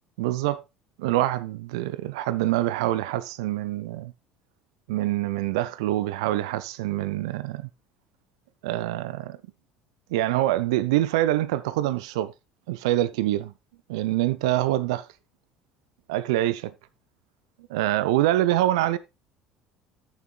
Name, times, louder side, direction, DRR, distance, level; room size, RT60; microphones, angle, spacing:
voice 1, 0.2-0.6 1.0-4.1 4.9-7.7 8.6-9.4 10.1-12.3 12.7-13.5 13.9-15.1 16.1-16.7 17.7-19.0, right 14 dB, 65° right, 0.4 m, -25 dB
14.5 x 7.2 x 2.3 m
figure-of-eight pair, 60°, 3 cm